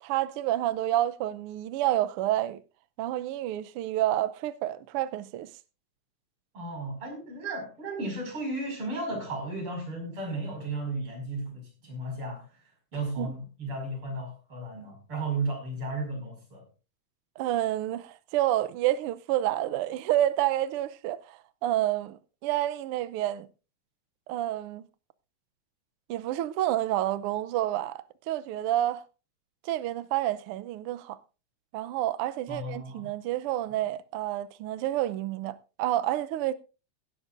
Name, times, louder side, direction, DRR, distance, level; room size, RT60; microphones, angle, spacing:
voice 1, 0.0-2.6 3.0-5.5 13.2-13.3 17.4-23.5 24.3-24.8 26.1-29.0 29.6-31.2 31.7-36.5, right 13 dB, 85° right, 1.2 m, -29 dB
voice 2, 6.5-12.5 12.9-16.6 32.5-33.1, right 2 dB, 45° right, 6.3 m, -34 dB
17.0 x 13.0 x 2.5 m
omnidirectional pair, 3.4 m